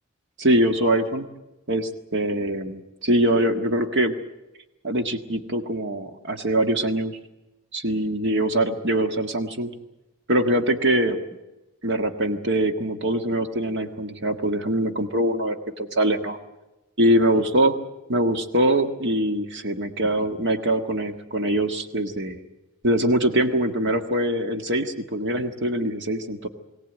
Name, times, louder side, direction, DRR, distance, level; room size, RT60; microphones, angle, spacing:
voice 1, 0.4-1.3 1.7-4.1 4.8-7.2 7.7-9.7 10.3-11.2 11.8-16.4 17.0-17.8 18.1-22.4 22.8-26.5, right 1 dB, 60° right, 7 dB, 1.7 m, -23 dB
22.0 x 17.5 x 9.2 m, 1.0 s
head